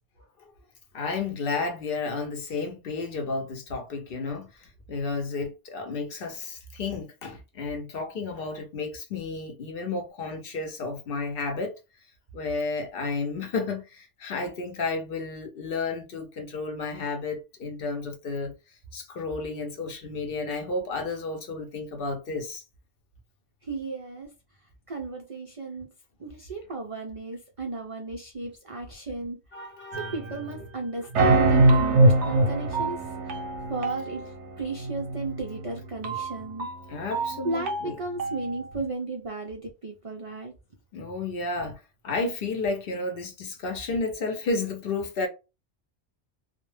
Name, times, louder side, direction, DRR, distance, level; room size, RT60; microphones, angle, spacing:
voice 1, 0.9-11.7 12.3-18.5 18.9-22.6 29.5-30.2 36.9-38.0 40.9-45.3, left 3 dB, 60° left, 0.8 m, -32 dB
voice 2, 23.6-24.3 24.9-25.9 26.2-29.4 30.0-33.4 33.7-36.7 37.4-40.5, right 3 dB, 65° right, 0.3 m, -34 dB
sound 1, 29.9-30.6 31.1-38.6, right 2 dB, 90° right, 0.9 m, -24 dB
2.1 x 2.1 x 3.1 m
omnidirectional pair, 1.2 m